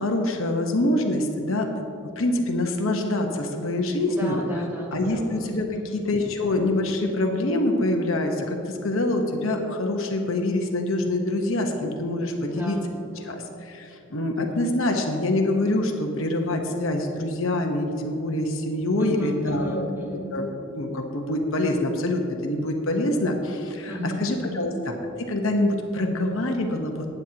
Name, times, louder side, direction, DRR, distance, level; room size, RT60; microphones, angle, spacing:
voice 1, 0.0-1.7 2.2-4.4 4.9-5.7 5.9-12.8 13.2-19.9 20.3-27.1, left 1 dB, 65° left, 3 dB, 1.1 m, -25 dB
voice 2, 4.1-6.1 12.5-13.5 19.0-20.3 23.9-24.7, equal, 10° right, -3 dB, 1.7 m, -35 dB
19.5 x 9.3 x 2.9 m, 2.6 s
head